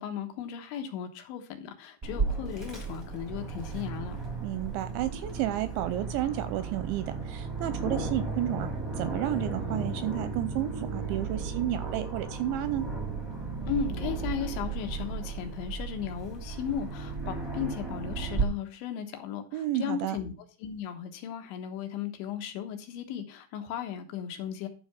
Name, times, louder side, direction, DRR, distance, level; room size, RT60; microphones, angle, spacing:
voice 1, 0.0-4.2 13.7-20.3 20.6-24.7, left 8 dB, 75° left, 3.4 m, -36 dB
Aircraft, 2.0-18.4, right 4 dB, 20° right, 0.6 m, -35 dB
voice 2, 4.4-8.7 9.0-12.9 19.5-20.2, right 13 dB, 80° right, 2.7 m, -31 dB
11.5 x 5.1 x 5.9 m
omnidirectional pair, 5.7 m